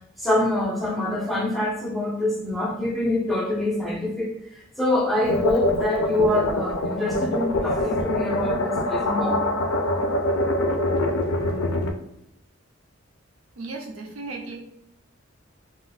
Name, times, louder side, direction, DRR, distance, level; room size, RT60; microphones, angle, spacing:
voice 1, 0.2-4.3 4.8-9.4, left 1 dB, ahead, -2 dB, 0.5 m, -25 dB
sound 1, 5.2-11.9, left 1 dB, 80° left, 0.4 m, -24 dB
voice 2, 13.6-14.6, right 3 dB, 85° right, 2 dB, 0.5 m, -35 dB
2.4 x 2.1 x 3.5 m, 0.76 s
head